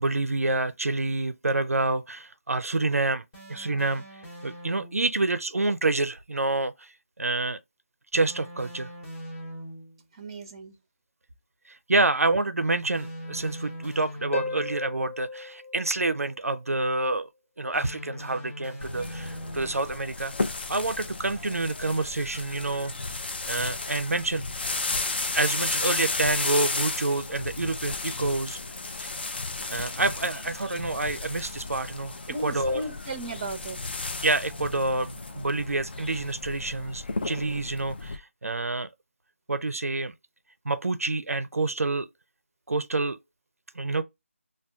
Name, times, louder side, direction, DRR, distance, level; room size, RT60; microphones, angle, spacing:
voice 1, 0.0-3.2 3.5-7.6 8.1-8.9 11.7-17.3 17.6-24.5 25.3-28.6 29.0-29.1 29.7-32.8 34.2-38.9 39.5-40.1 40.6-42.1 42.7-43.2 43.7-44.0, right 2 dB, 85° right, 0.4 m, -28 dB
sound 1, 3.3-5.1 8.1-10.0 12.9-14.9 17.7-19.9, equal, 15° left, 0.9 m, -41 dB
voice 2, 10.1-10.8 32.3-33.8, right 2 dB, 25° right, 0.6 m, -35 dB
Harp, 14.3-16.8 20.3-20.4, left 2 dB, 60° left, 0.9 m, -35 dB
sound 2, 18.8-38.2, left 3 dB, 45° left, 0.4 m, -33 dB
5.9 x 2.3 x 2.2 m
figure-of-eight pair, 160°, 8 cm